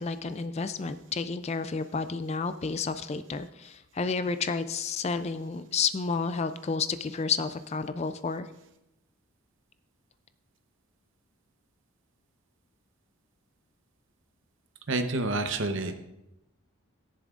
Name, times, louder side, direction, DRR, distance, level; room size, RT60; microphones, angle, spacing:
voice 1, 0.0-8.5, left 5 dB, 30° left, 11 dB, 0.3 m, -31 dB
voice 2, 14.9-15.9, right 2 dB, 55° right, 7 dB, 0.9 m, -28 dB
13.5 x 10.5 x 2.5 m, 0.90 s
head